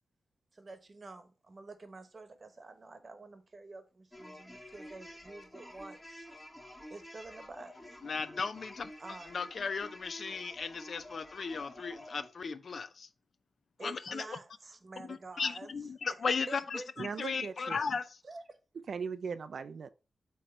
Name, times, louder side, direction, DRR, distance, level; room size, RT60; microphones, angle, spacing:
voice 1, 0.5-6.3 6.9-8.0 9.0-9.3 13.8-15.7 16.5-17.2 18.2-18.6, right 3 dB, 40° right, 1.1 m, -49 dB
sound 1, 4.1-12.3, left 1 dB, 10° left, 1.1 m, -50 dB
voice 2, 8.0-8.9 9.3-13.1 13.8-14.4 15.0-18.2, left 5 dB, 60° left, 0.5 m, -36 dB
voice 3, 17.0-17.8 18.9-19.9, right 6 dB, 65° right, 0.4 m, -38 dB
7.8 x 3.1 x 4.4 m
wide cardioid pair, 95°, 0 cm